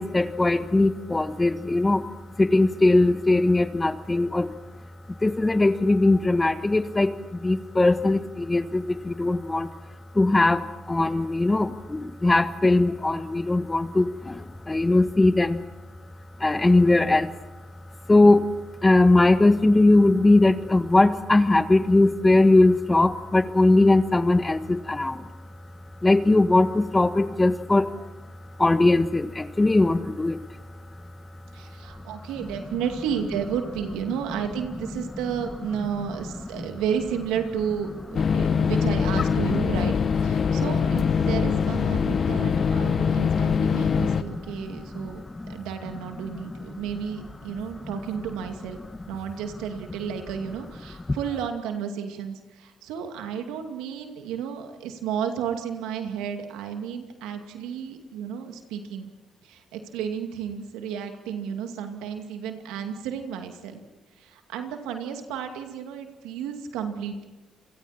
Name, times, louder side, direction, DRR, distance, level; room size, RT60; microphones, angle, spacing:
voice 1, 0.0-2.1 2.4-4.5 5.1-9.8 10.1-15.7 16.4-17.4 18.1-25.3 26.0-28.0 28.6-30.6 36.6-36.7 38.5-38.6 42.1-45.6 46.2-46.8 47.8-47.9 51.1-51.2, left 2 dB, 20° left, 11 dB, 1.5 m, -21 dB
voice 2, 31.5-39.9 40.2-48.8 49.1-59.1 59.4-63.8 64.2-67.2, right 8 dB, 85° right, 5 dB, 2.4 m, -32 dB
sound 1, 38.1-44.2, left 6 dB, 55° left, 1.1 m, -23 dB
29.0 x 24.0 x 4.4 m, 1.2 s
supercardioid pair, 55°, 0 cm